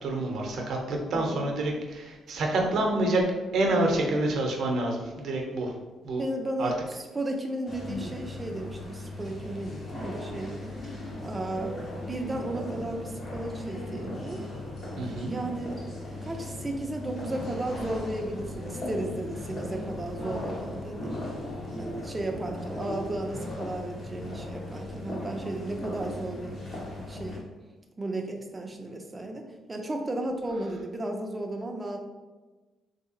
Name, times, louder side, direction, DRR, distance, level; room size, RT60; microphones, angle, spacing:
voice 1, 0.0-3.2 3.5-5.7 6.0-6.2 6.6-6.7 15.0-15.3, right 2 dB, 65° right, 1 dB, 0.7 m, -27 dB
voice 2, 1.1-1.5 6.2-10.9 11.2-11.8 12.1-14.4 15.2-15.8 16.0-21.1 21.8-26.7 27.1-27.5 28.0-32.0, right 1 dB, 20° right, 3 dB, 0.5 m, -34 dB
sound 1, 7.6-27.4, left 1 dB, 50° left, 1.2 m, -37 dB
3.3 x 2.7 x 2.8 m, 1.2 s
cardioid pair, 90°, 0 cm